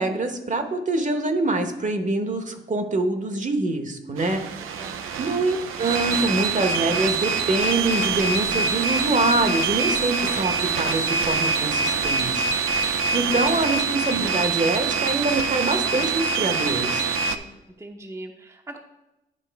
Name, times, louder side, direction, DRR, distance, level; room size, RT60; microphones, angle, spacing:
voice 1, 0.0-4.4 5.2-12.4 13.1-17.0, right 2 dB, 35° right, 7 dB, 1.0 m, -25 dB
sound 1, 4.2-17.4, right 5 dB, 85° right, 0.5 m, -25 dB
voice 2, 4.6-5.1 17.3-18.8, right 1 dB, 15° right, 2 dB, 0.7 m, -42 dB
sound 2, 7.6-13.8, left 4 dB, 30° left, 0.6 m, -39 dB
10.0 x 4.1 x 3.4 m, 0.94 s
cardioid pair, 60°, 21 cm